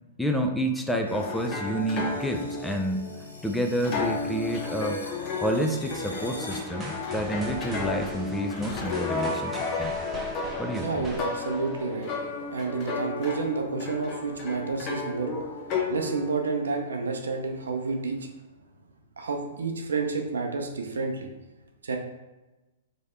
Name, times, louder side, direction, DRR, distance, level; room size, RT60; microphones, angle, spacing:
voice 1, 0.2-3.1 3.4-5.0 5.4-10.0 10.6-11.1, equal, 5° left, 4 dB, 0.4 m, -29 dB
sound 1, 1.1-7.2, left 1 dB, 90° left, 0.8 m, -47 dB
sound 2, 1.1-16.3, left 4 dB, 35° left, 0.7 m, -33 dB
sound 3, 6.5-12.4, right 2 dB, 15° right, 0.8 m, -41 dB
voice 2, 10.8-12.1 12.5-15.3 15.9-18.3 19.2-21.3 21.8-22.0, right 4 dB, 75° right, 3 dB, 0.6 m, -30 dB
3.2 x 2.7 x 4.4 m, 1.1 s
figure-of-eight pair, 110°, 0 cm